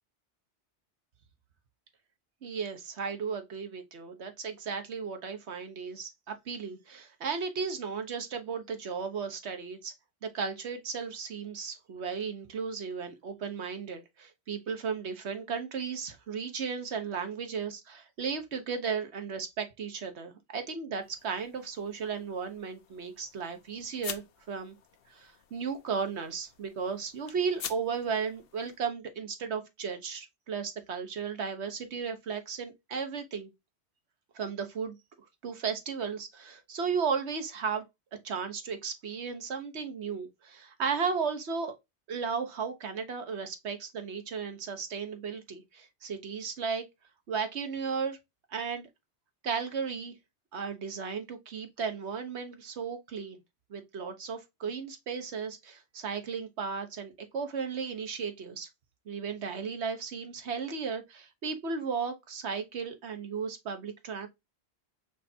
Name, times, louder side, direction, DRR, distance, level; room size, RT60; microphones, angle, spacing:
voice 1, 2.4-9.9 10.2-24.8 25.1-33.5 34.3-35.0 35.4-37.8 38.2-41.7 42.1-46.8 47.3-48.2 48.5-48.9 49.4-50.1 50.5-53.4 53.7-58.7 59.1-64.3, right 5 dB, 75° right, 1.3 m, -35 dB
sound 1, 21.0-28.8, left 8 dB, 60° left, 0.8 m, -47 dB
5.1 x 3.4 x 2.7 m
omnidirectional pair, 1.2 m